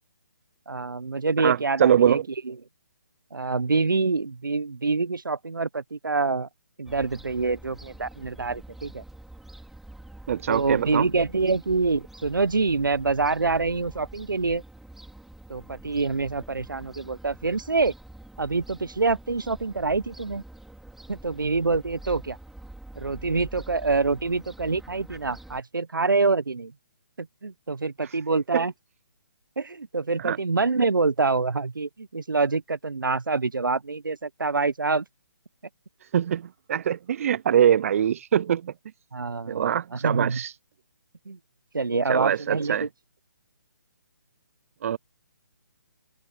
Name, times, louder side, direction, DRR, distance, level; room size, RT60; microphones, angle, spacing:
voice 1, 0.7-2.2 2.4-2.5 3.3-6.5 6.8-9.0 10.5-14.6 15.5-17.9 18.4-20.4 21.1-22.4 23.0-26.7 27.2-28.7 29.6-35.0 39.1-40.4 41.3-41.4 41.7-42.9, right 4 dB, 80° right, 1.1 m, -26 dB
voice 2, 1.4-2.2 10.3-11.1 28.0-28.2 28.5-28.6 30.2-30.4 36.0-38.7 39.5-40.5 42.1-42.9 44.8-45.0, right 9 dB, 45° right, 0.6 m, -23 dB
Fowl / Gull seagull, 6.9-25.6, right 1 dB, ahead, 4.2 m, -46 dB
figure-of-eight pair, 140°, 11 cm